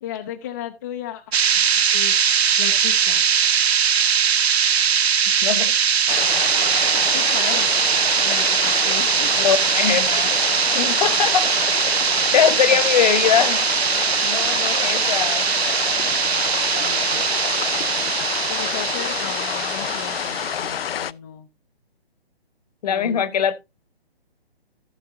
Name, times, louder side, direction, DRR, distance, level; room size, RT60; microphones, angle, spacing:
voice 1, 0.0-1.4 1.9-3.2 7.0-7.7 8.2-9.3 12.3-12.8 16.7-17.3 18.5-21.5 22.8-23.2, left 10 dB, 20° left, 0.5 m, -35 dB
sound 1, 1.3-20.8, right 7 dB, 80° right, 0.7 m, -21 dB
voice 2, 5.4-5.7 9.4-10.3 10.7-11.5 12.3-13.6 14.2-15.4 22.8-23.6, left 8 dB, 40° left, 1.0 m, -21 dB
sound 2, 6.1-21.1, left 9 dB, 65° left, 0.5 m, -28 dB
15.0 x 6.8 x 2.7 m
hypercardioid pair, 145°, 31 cm